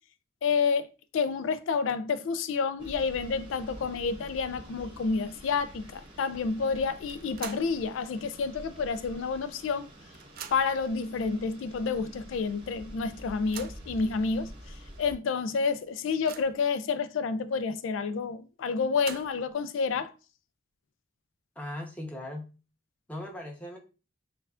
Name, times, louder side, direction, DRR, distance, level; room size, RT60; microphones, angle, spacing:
voice 1, 0.4-0.9 1.1-9.9 10.5-14.5 15.0-20.1, left 5 dB, 90° left, 0.3 m, -29 dB
sound 1, 2.8-15.1, equal, 25° right, 0.8 m, -48 dB
sound 2, 7.1-7.8 8.2-8.3 9.4-9.5 9.8-10.9 11.6-11.7 12.1-12.2 13.2-13.9 14.6-14.7 15.1-15.2 15.7-16.7 18.7-19.6, right 8 dB, 50° right, 0.4 m, -45 dB
voice 2, 21.6-22.5 23.1-23.8, left 1 dB, 10° left, 0.8 m, -38 dB
6.3 x 2.3 x 2.4 m
head